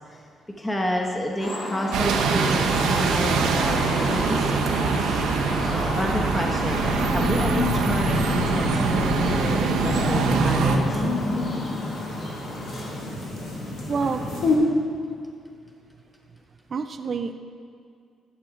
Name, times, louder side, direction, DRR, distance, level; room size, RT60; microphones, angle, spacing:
voice 1, 0.6-5.0 5.7-11.0 13.7-13.8, equal, 15° left, 0 dB, 1.0 m, -30 dB
sound 1, 1.4-12.9, left 1 dB, 55° left, 2.3 m, -33 dB
Bus, 1.9-10.8, right 4 dB, 90° right, 0.8 m, -24 dB
sound 2, 6.6-14.6, left 2 dB, 80° left, 2.1 m, -28 dB
voice 2, 13.9-14.2 16.7-17.3, right 5 dB, 45° right, 8 dB, 0.4 m, -27 dB
11.0 x 6.2 x 4.9 m, 2.3 s
cardioid pair, 90°, 0 cm